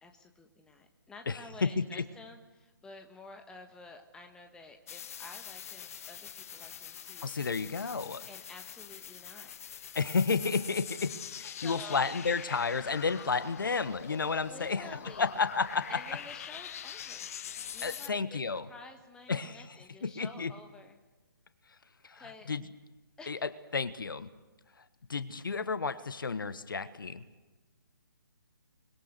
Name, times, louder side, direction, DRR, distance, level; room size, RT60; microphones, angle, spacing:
voice 1, 0.0-7.4 8.3-9.5 11.6-12.0 14.4-15.4 15.9-17.3 17.7-18.4 18.7-21.0 22.1-22.5 23.2-23.3, left 3 dB, 5° left, 5 dB, 1.4 m, -51 dB
voice 2, 1.3-2.1 7.2-8.3 9.9-14.9 15.2-16.0 17.8-18.6 19.3-19.6 20.0-20.5 22.0-22.6 23.3-24.3 25.1-27.2, left 4 dB, 65° left, 13 dB, 1.3 m, -32 dB
sound 1, 4.9-18.1, left 9 dB, 40° left, 0.7 m, -44 dB
24.0 x 21.5 x 6.7 m, 1.2 s
figure-of-eight pair, 140°, 12 cm